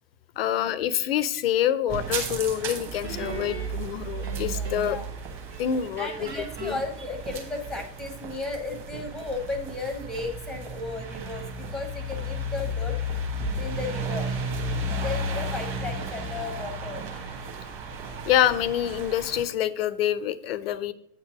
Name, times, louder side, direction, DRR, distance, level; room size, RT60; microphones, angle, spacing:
voice 1, 0.4-5.0 5.6-6.3 6.6-6.7 18.3-20.9, left 10 dB, 40° left, 16 dB, 0.4 m, -26 dB
sound 1, 1.9-19.4, right 1 dB, 25° right, 1.6 m, -33 dB
Guitar, 3.0-5.2 5.5-7.8, right 4 dB, 85° right, 2.3 m, -40 dB
voice 2, 4.5-5.1 6.0-13.0 13.6-14.3 15.0-17.2, left 3 dB, ahead, 6 dB, 0.7 m, -35 dB
8.6 x 4.7 x 4.7 m, 0.70 s
figure-of-eight pair, 105°, 49 cm